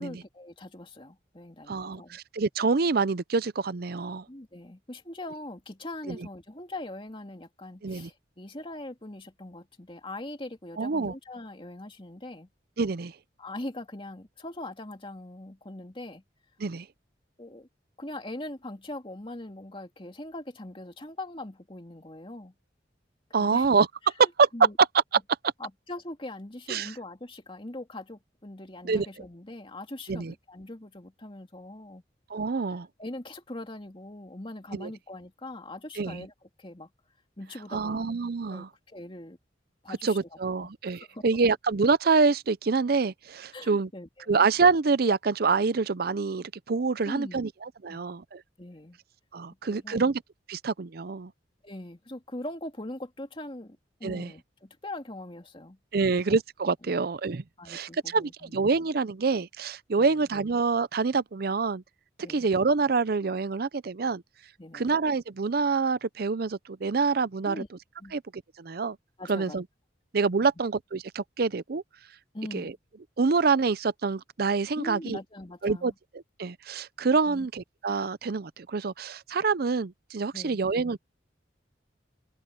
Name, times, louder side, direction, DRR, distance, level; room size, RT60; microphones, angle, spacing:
voice 1, 0.0-2.2 4.3-12.5 13.4-16.2 17.4-17.7 18.0-22.5 23.4-23.7 24.2-24.8 25.6-32.0 33.0-36.3 36.6-36.9 37.4-38.1 38.5-39.4 39.8-41.2 43.5-44.5 47.0-47.5 47.9-48.2 48.6-49.0 49.7-50.0 51.6-56.2 56.8-57.0 57.6-58.6 60.0-60.3 62.2-62.5 64.6-64.9 67.4-67.7 68.0-68.2 69.2-69.6 70.4-70.5 72.3-72.8 74.8-75.9 77.3-77.5 80.3-80.6, left 1 dB, 30° left, 2.6 m, -41 dB
voice 2, 1.7-4.2 6.1-6.2 7.8-8.1 10.8-11.1 12.8-13.1 16.6-16.9 23.3-23.9 24.2-24.5 26.7-26.9 28.8-29.1 30.1-30.3 32.3-32.9 34.7-34.9 36.0-36.2 37.7-38.7 39.9-43.9 44.3-48.4 49.3-50.2 50.5-51.3 54.0-54.3 55.9-61.8 62.3-64.2 64.7-67.6 68.1-68.2 68.6-69.0 69.3-69.6 70.1-71.8 72.5-72.7 73.2-75.2 75.6-75.9 76.4-81.0, right 4 dB, 55° right, 0.6 m, -26 dB
head